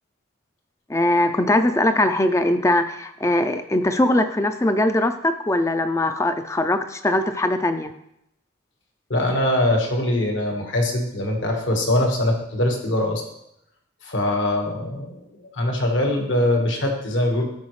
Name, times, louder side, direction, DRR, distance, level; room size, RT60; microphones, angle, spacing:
voice 1, 0.9-7.9, left 1 dB, 15° left, 9 dB, 0.3 m, -21 dB
voice 2, 9.1-13.2 14.0-15.2 15.5-17.4, left 1 dB, 70° left, 2 dB, 1.4 m, -22 dB
12.5 x 4.7 x 3.1 m, 0.79 s
head